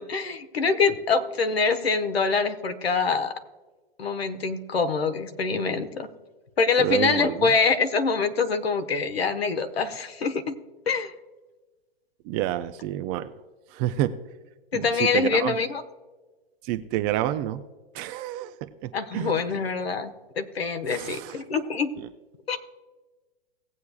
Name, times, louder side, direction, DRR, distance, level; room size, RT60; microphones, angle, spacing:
voice 1, 0.0-3.3 4.0-6.1 6.6-10.6 10.9-11.1 14.7-15.8 18.9-20.1 20.4-21.9 22.5-22.6, left 4 dB, 80° left, 8 dB, 1.3 m, -25 dB
voice 2, 6.8-7.5 12.3-13.3 13.7-14.1 14.7-15.5 16.6-17.6 17.9-19.3 20.9-21.4 22.0-22.1, right 13 dB, 20° right, 10 dB, 0.3 m, -29 dB
18.5 x 8.2 x 2.3 m, 1.2 s
hypercardioid pair, 125°, 30 cm